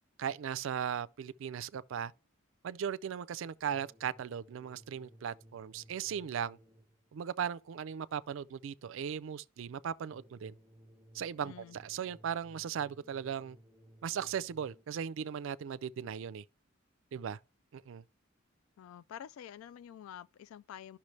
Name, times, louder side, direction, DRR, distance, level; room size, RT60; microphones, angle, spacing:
voice 1, 0.2-2.1 2.6-6.6 7.1-10.6 11.1-13.6 14.0-16.4 17.1-17.4 17.7-18.0, right 8 dB, 65° right, 0.4 m, -37 dB
sound 1, 3.7-7.1 10.1-15.1, equal, 5° right, 0.5 m, -60 dB
voice 2, 11.4-11.8 18.8-21.0, left 9 dB, 85° left, 0.3 m, -48 dB
12.0 x 5.8 x 3.2 m
head